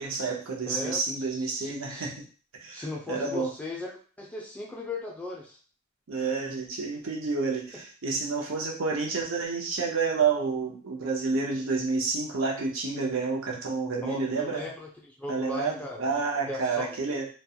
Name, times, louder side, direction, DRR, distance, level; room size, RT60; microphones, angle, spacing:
voice 1, 0.0-2.2 2.5-3.5 6.1-14.7 15.3-17.3, right 4 dB, 70° right, -1 dB, 0.6 m, -29 dB
voice 2, 0.7-1.0 1.5-2.1 2.7-5.6 14.0-16.0 16.5-17.2, left 2 dB, 5° left, -3 dB, 0.4 m, -37 dB
2.4 x 2.2 x 2.7 m, 0.40 s
head